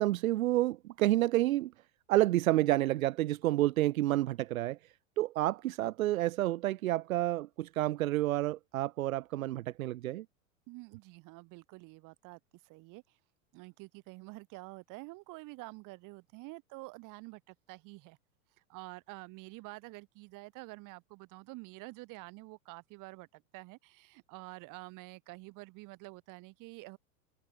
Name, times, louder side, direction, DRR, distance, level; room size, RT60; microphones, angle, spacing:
voice 1, 0.0-1.7 2.1-4.8 5.2-10.2, right 15 dB, 80° right, 0.9 m, -29 dB
voice 2, 10.7-13.0 13.5-18.2 18.7-27.0, right 24 dB, 50° right, 2.9 m, -48 dB
hypercardioid pair, 110°, 41 cm